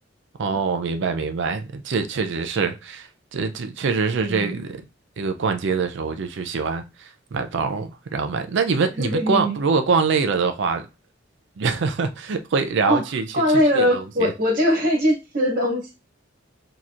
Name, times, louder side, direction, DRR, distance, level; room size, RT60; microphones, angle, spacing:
voice 1, 0.4-4.8 5.2-10.9 11.6-13.2 13.7-14.3, right 5 dB, 65° right, 0.4 m, -24 dB
voice 2, 4.2-4.6 9.0-9.6 12.9-13.0 13.3-15.9, equal, 45° right, 1.7 m, -21 dB
4.2 x 2.9 x 2.4 m
head